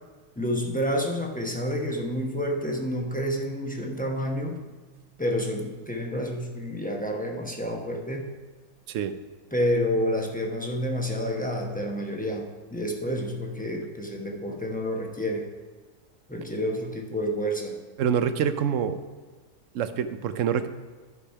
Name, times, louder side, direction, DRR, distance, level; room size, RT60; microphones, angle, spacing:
voice 1, 0.4-4.6 5.2-8.3 9.5-15.5 16.3-17.8, equal, 5° left, 0 dB, 0.8 m, -29 dB
voice 2, 18.0-19.0 19.7-20.7, right 8 dB, 65° right, 11 dB, 0.9 m, -26 dB
11.5 x 5.1 x 5.6 m, 1.4 s
omnidirectional pair, 1.6 m